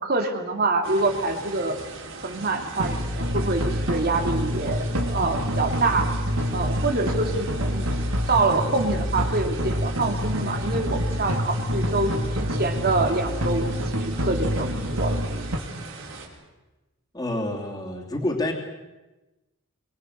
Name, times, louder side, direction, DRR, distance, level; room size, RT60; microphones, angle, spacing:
voice 1, 0.0-1.8 2.2-6.0 6.5-7.9 8.3-15.2, right 3 dB, 45° right, 4 dB, 3.0 m, -26 dB
sound 1, 0.8-16.3, right 3 dB, 60° right, 5.4 m, -40 dB
sound 2, 2.8-15.6, equal, 85° right, 3.4 m, -27 dB
voice 2, 17.1-18.5, left 1 dB, 20° left, -2 dB, 3.1 m, -28 dB
24.5 x 24.0 x 6.7 m, 1.1 s
head